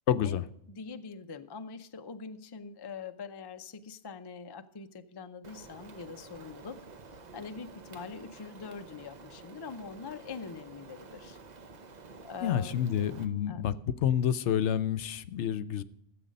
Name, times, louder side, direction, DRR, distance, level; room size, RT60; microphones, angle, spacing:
voice 1, 0.1-0.4 12.4-13.7 14.0-15.8, left 9 dB, 70° left, 13 dB, 0.9 m, -28 dB
voice 2, 0.7-6.8 7.3-11.4 12.2-12.8 13.5-13.6, left 5 dB, 30° left, 8 dB, 0.4 m, -43 dB
Rain, 5.4-13.3, right 3 dB, 40° right, 0.8 m, -50 dB
14.0 x 7.8 x 5.2 m, 0.75 s
omnidirectional pair, 1.3 m